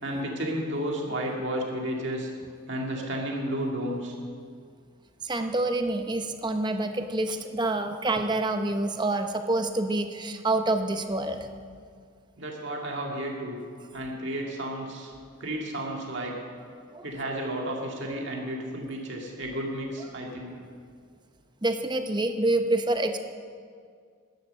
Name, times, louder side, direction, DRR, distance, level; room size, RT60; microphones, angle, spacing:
voice 1, 0.0-2.3 2.7-4.2 12.4-13.6 13.9-15.1 15.4-16.4 17.0-20.5, right 1 dB, 55° right, -1 dB, 2.1 m, -32 dB
voice 2, 5.2-11.5 16.9-17.1 21.6-23.2, right 2 dB, 20° right, 7 dB, 0.7 m, -27 dB
13.0 x 10.5 x 6.7 m, 2.1 s
head